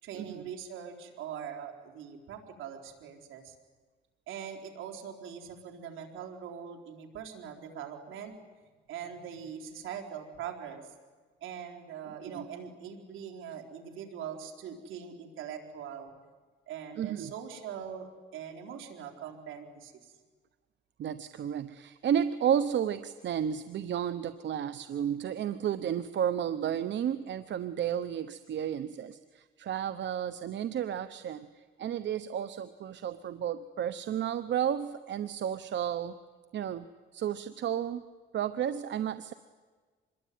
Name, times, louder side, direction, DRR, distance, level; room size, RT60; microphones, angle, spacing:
voice 1, 0.0-3.5 4.3-8.3 8.9-10.9 11.4-16.1 16.7-20.1, right 8 dB, 85° right, 2 dB, 4.3 m, -42 dB
voice 2, 17.0-17.3 21.0-31.5 31.8-36.1 36.5-36.9 37.1-38.0 38.3-39.3, right 9 dB, 65° right, 13 dB, 1.0 m, -32 dB
26.0 x 22.0 x 9.5 m, 1.4 s
cardioid pair, 90°, 20 cm